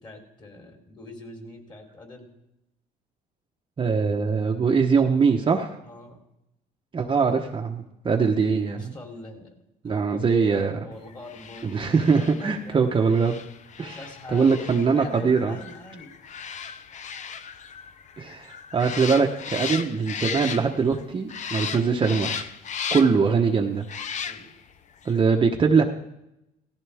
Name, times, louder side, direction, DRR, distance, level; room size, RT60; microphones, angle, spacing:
voice 1, 0.0-2.3 5.8-6.2 8.8-9.5 9.9-13.3 13.8-16.2 23.2-23.4 24.3-24.5, left 2 dB, 25° left, 3 dB, 3.6 m, -43 dB
voice 2, 3.8-5.8 6.9-8.9 9.8-10.7 11.6-13.4 13.8-14.0 14.3-15.6 18.2-22.5 22.9-23.8 25.0-25.8, right 5 dB, 30° right, 2 dB, 1.1 m, -22 dB
sound 1, 11.2-21.0 21.3-23.3 23.8-24.7 25.0-25.2, left 7 dB, 45° left, 0.8 m, -36 dB
17.5 x 14.5 x 3.5 m, 0.86 s
cardioid pair, 110°, 17 cm